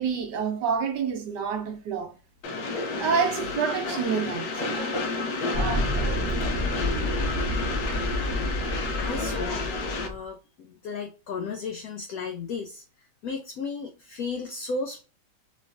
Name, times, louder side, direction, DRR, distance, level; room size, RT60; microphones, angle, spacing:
voice 1, 0.0-2.1 3.0-5.0 5.5-5.9, right 6 dB, 70° right, 1.2 m, -28 dB
Train, 2.4-10.1, left 3 dB, 70° left, 1.2 m, -30 dB
sound 1, 5.5-10.2, left 1 dB, 35° right, 0.6 m, -29 dB
voice 2, 9.0-12.8 13.2-15.0, left 4 dB, 85° left, 0.8 m, -34 dB
3.2 x 3.0 x 2.5 m
omnidirectional pair, 2.1 m